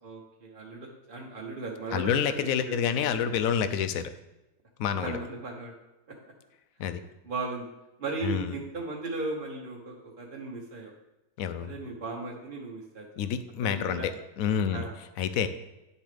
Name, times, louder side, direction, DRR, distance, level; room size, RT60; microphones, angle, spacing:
voice 1, 0.0-3.0 4.9-5.7 6.1-6.2 7.2-7.7 8.0-10.9 11.6-13.3 13.6-14.1 14.7-15.0, right 3 dB, 35° right, -2 dB, 1.1 m, -37 dB
voice 2, 1.9-4.1 4.8-5.2 6.8-7.0 8.2-8.5 11.4-11.7 13.2-14.1 14.4-14.9 15.2-15.5, left 8 dB, 70° left, 11 dB, 0.9 m, -28 dB
9.8 x 7.0 x 3.4 m, 1.0 s
omnidirectional pair, 1.8 m